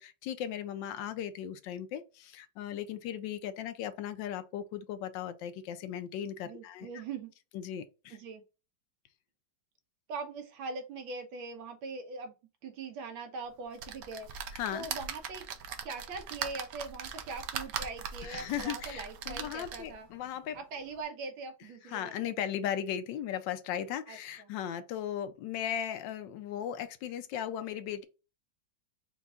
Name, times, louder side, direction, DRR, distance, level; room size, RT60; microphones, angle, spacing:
voice 1, 0.0-7.0 7.5-8.2 14.5-14.9 18.2-20.6 21.9-28.1, left 10 dB, 75° left, 1.2 m, -37 dB
voice 2, 6.4-7.3 8.1-8.4 10.1-12.3 12.6-14.3 14.7-15.4 15.8-20.1 20.5-22.5 24.1-24.5, right 4 dB, 90° right, 1.7 m, -42 dB
sound 1, 13.8-20.0 20.6-20.7 20.9-21.0, right 7 dB, 70° right, 0.9 m, -40 dB
4.6 x 2.3 x 3.6 m
omnidirectional pair, 2.1 m